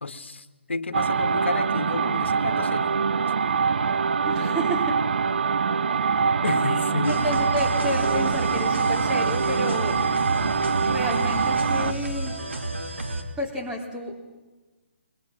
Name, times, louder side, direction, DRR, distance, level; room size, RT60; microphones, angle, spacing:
voice 1, 0.0-2.9 6.4-7.3, left 3 dB, 75° left, 10 dB, 1.5 m, -30 dB
sound 1, 0.9-11.9, right 5 dB, 60° right, 0.8 m, -24 dB
Mallet percussion, 3.6-5.0 5.4-10.8, left 4 dB, 5° left, 7.0 m, -48 dB
voice 2, 4.2-5.0 5.7-6.3 6.6-10.0 10.7-12.4 13.4-14.2, equal, 10° right, -1 dB, 3.4 m, -31 dB
sound 2, 7.0-13.2, right 1 dB, 85° right, 3.1 m, -31 dB
29.5 x 22.0 x 6.0 m, 1.2 s
figure-of-eight pair, 140°, 6 cm